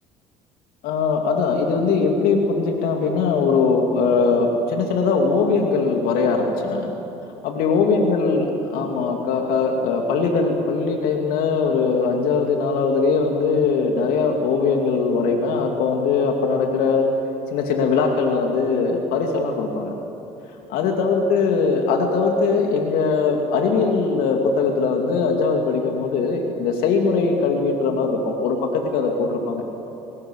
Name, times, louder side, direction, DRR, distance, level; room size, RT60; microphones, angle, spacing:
voice 1, 0.8-6.9 7.4-17.1 17.5-19.9 20.7-29.6, left 4 dB, 70° left, 2 dB, 2.5 m, -21 dB
20.0 x 19.5 x 10.0 m, 3.0 s
hypercardioid pair, 65°, 16 cm